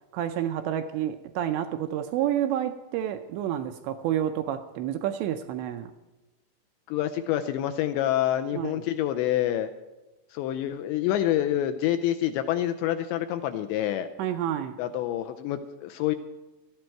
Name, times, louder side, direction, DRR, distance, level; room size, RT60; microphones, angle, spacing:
voice 1, 0.1-5.9 8.5-8.8 14.2-14.7, right 11 dB, 80° right, 2.7 m, -29 dB
voice 2, 6.9-9.7 10.3-14.1 14.8-16.2, left 12 dB, 80° left, 2.7 m, -27 dB
18.5 x 13.5 x 4.6 m
omnidirectional pair, 5.6 m